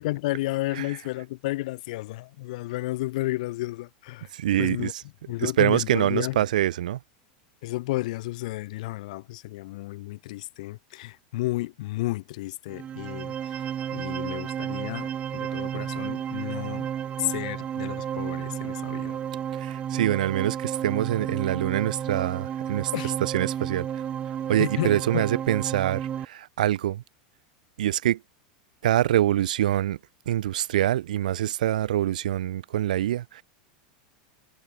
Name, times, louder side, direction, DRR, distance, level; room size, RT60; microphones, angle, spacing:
voice 1, 0.0-4.3 4.6-4.9 5.2-6.4 7.6-16.9 17.2-19.2 22.9-23.1 24.6-25.3, left 19 dB, 70° left, 1.6 m, -32 dB
voice 2, 4.3-5.0 5.4-7.0 19.6-22.9 23.2-23.9 24.5-27.0 27.8-28.2 28.8-30.0 30.3-33.4, right 12 dB, 85° right, 0.9 m, -25 dB
sound 1, 12.7-26.2, right 9 dB, 30° right, 2.6 m, -32 dB
supercardioid pair, 120°, 4 cm